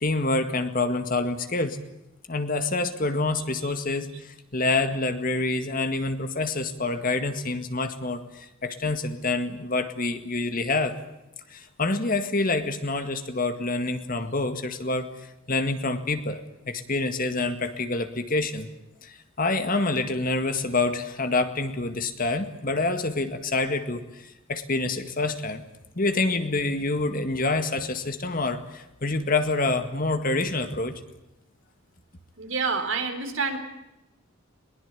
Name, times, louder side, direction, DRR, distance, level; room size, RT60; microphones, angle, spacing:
voice 1, 0.0-1.8 2.3-11.0 11.5-15.1 15.5-16.4 16.7-18.7 19.0-25.6 26.0-31.0, left 3 dB, 40° left, 9 dB, 1.9 m, -27 dB
voice 2, 32.4-33.6, right 4 dB, 65° right, 6 dB, 4.2 m, -28 dB
22.0 x 20.0 x 8.5 m, 0.93 s
head